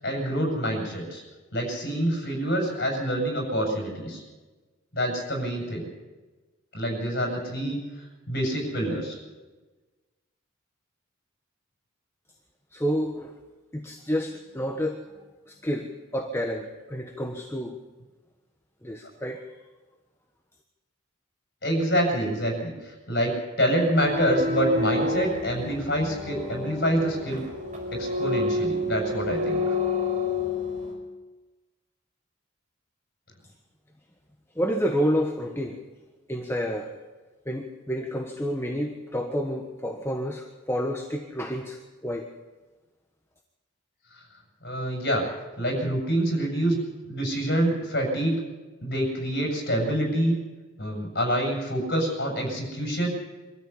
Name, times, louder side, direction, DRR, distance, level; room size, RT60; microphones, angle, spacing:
voice 1, 0.0-1.2 1.5-4.2 4.9-5.9 6.7-7.8 8.3-9.2 21.6-27.4 27.9-29.8 44.6-45.2 45.6-46.8 47.1-48.4 48.8-50.4 50.8-53.1, equal, 50° left, 1 dB, 7.4 m, -26 dB
voice 2, 12.7-13.3 13.7-15.0 15.5-17.7 18.8-19.4 34.6-35.8 36.3-36.9 37.5-42.3, equal, 10° left, 3 dB, 1.2 m, -29 dB
sound 1, 23.9-30.9, left 2 dB, 35° right, 5.1 m, -29 dB
24.5 x 13.5 x 8.4 m, 1.2 s
head